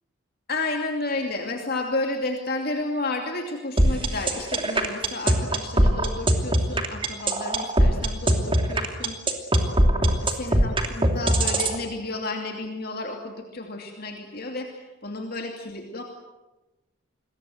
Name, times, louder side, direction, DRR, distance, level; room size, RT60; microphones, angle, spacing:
voice 1, 0.5-9.2 10.0-16.0, left 2 dB, 45° left, 3 dB, 2.7 m, -32 dB
sound 1, 3.8-11.7, right 1 dB, 25° right, 2.9 m, -20 dB
28.5 x 22.0 x 7.9 m, 1.0 s
head